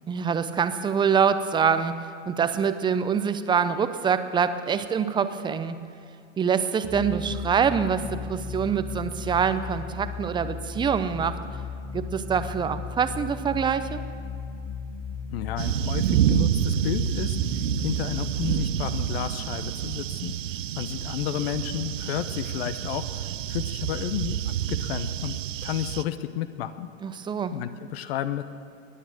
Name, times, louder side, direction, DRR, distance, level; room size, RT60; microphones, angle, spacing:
voice 1, 0.1-5.8 6.4-11.4 11.9-14.0 27.0-27.6, right 7 dB, 10° right, 11 dB, 0.6 m, -25 dB
sound 1, 6.9-20.1, left 5 dB, 30° left, 3.5 m, -36 dB
voice 2, 15.3-20.3 20.8-24.4 24.7-25.4 25.6-26.9 27.5-28.4, left 12 dB, 50° left, 12 dB, 0.9 m, -31 dB
sound 2, 15.6-26.0, right 11 dB, 70° right, 0.8 m, -28 dB
21.0 x 9.2 x 7.5 m, 2.4 s
hypercardioid pair, 115°, 40 cm